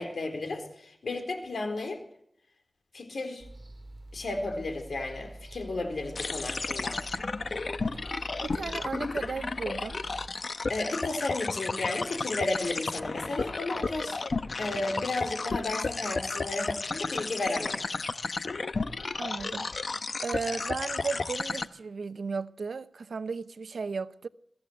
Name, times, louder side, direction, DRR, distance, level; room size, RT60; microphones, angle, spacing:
voice 1, 0.0-2.0 2.9-3.4 4.1-7.0 10.7-14.2 14.6-17.8, left 2 dB, 80° left, 4.0 m, -33 dB
sound 1, 3.4-10.3, right 1 dB, 30° right, 5.3 m, -46 dB
sound 2, 6.2-21.7, left 3 dB, 60° left, 0.9 m, -33 dB
voice 2, 7.9-10.0 19.2-20.0 20.2-24.3, right 4 dB, 80° right, 0.8 m, -35 dB
23.0 x 15.0 x 8.0 m
wide cardioid pair, 95°, 0 cm